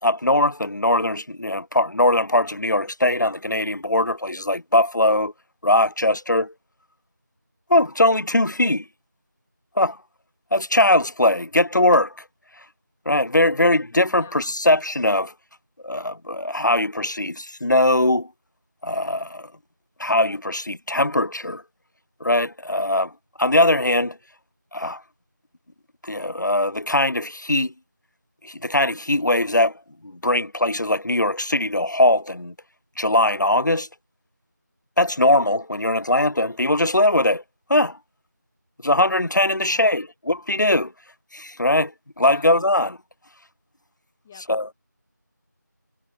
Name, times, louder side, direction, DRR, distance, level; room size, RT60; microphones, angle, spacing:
voice 1, 0.0-5.3 5.6-6.5 7.7-8.8 9.8-10.0 10.5-12.1 13.1-15.3 15.8-18.3 18.8-19.5 20.0-21.6 22.2-23.1 23.4-24.2 24.7-25.0 26.0-27.7 28.4-29.7 30.2-32.5 33.0-33.9 35.0-37.4 37.7-38.0 38.8-40.9 41.3-41.9 42.2-43.0 44.5-44.7, left 1 dB, 70° left, 1.0 m, -20 dB
voice 2, 13.9-14.4 39.6-40.0 42.2-42.5 44.2-44.5, left 9 dB, ahead, 1.2 m, -46 dB
figure-of-eight pair, 175°, 10 cm